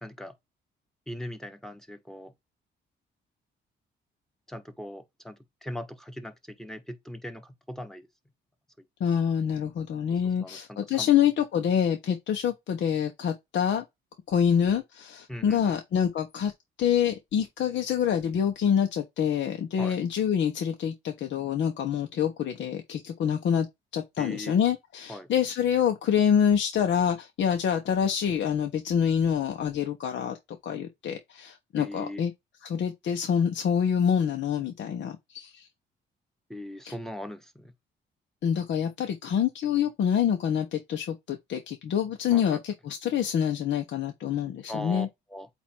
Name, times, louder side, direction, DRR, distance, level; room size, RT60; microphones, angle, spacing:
voice 1, 0.0-0.3 1.1-2.3 4.5-8.1 10.2-11.1 15.3-15.7 19.8-20.0 24.2-24.6 25.1-25.3 31.8-32.2 36.5-37.7 42.3-42.6 44.7-45.5, left 1 dB, ahead, 1.3 m, -40 dB
voice 2, 9.0-13.8 14.3-16.5 16.8-23.7 23.9-30.4 30.6-32.3 32.6-35.7 36.8-36.9 38.4-45.1, left 8 dB, 65° left, 1.1 m, -26 dB
8.1 x 2.7 x 4.5 m
cardioid pair, 90°, 20 cm